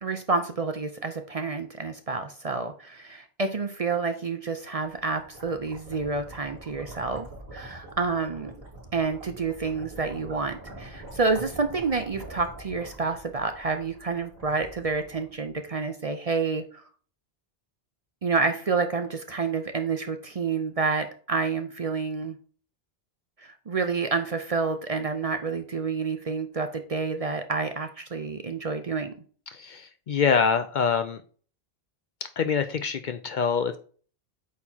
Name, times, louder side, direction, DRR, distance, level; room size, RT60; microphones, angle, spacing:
voice 1, 0.0-8.5 8.9-16.8 18.2-22.4 23.4-29.1, right 4 dB, 45° right, 8 dB, 0.6 m, -29 dB
sound 1, 4.6-15.8, right 1 dB, 60° right, 3.2 m, -45 dB
voice 2, 29.5-31.2 32.4-33.8, left 6 dB, 60° left, 10 dB, 0.6 m, -25 dB
8.3 x 4.5 x 2.8 m, 0.43 s
omnidirectional pair, 1.1 m